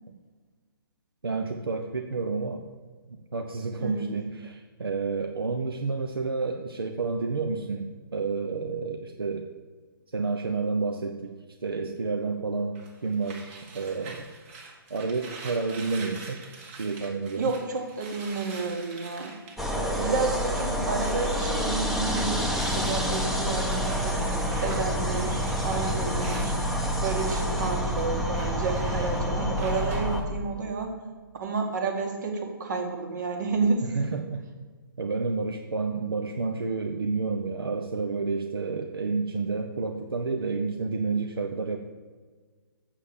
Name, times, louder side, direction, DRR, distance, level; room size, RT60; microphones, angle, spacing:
voice 1, 1.2-2.6 3.1-9.5 10.1-11.4 11.6-14.3 14.9-16.4 16.8-17.5 19.7-20.2 33.9-34.4 35.0-41.8, right 4 dB, 75° right, 4 dB, 0.9 m, -30 dB
voice 2, 3.8-4.2 17.4-19.3 19.9-24.2 24.6-26.5 26.9-30.9 31.4-33.9, right 4 dB, 50° right, 3 dB, 2.0 m, -30 dB
sound 1, 12.8-20.7 21.0-30.2, right 4 dB, 35° right, 1.7 m, -45 dB
sound 2, 19.6-30.2, equal, ahead, 0.8 m, -28 dB
7.3 x 6.4 x 7.1 m, 1.5 s
figure-of-eight pair, 135°, 12 cm